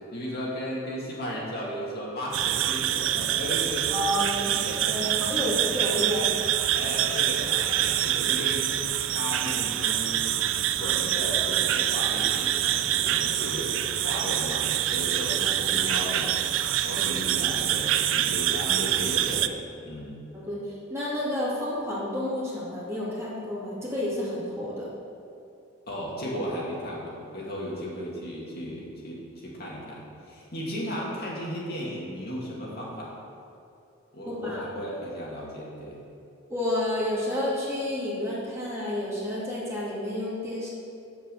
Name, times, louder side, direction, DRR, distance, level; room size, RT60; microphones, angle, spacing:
voice 1, 0.1-5.0 5.3-5.5 6.7-8.7 9.1-10.2 10.8-20.2 25.9-33.1 34.1-36.0, equal, 55° left, -4 dB, 2.3 m, -35 dB
sound 1, 2.3-19.5, right 11 dB, 70° right, 0.4 m, -26 dB
voice 2, 3.9-6.3 20.3-20.6 20.9-24.9 34.2-34.6 36.5-40.7, left 1 dB, 15° right, -8 dB, 2.7 m, -30 dB
8.4 x 7.3 x 6.8 m, 2.7 s
head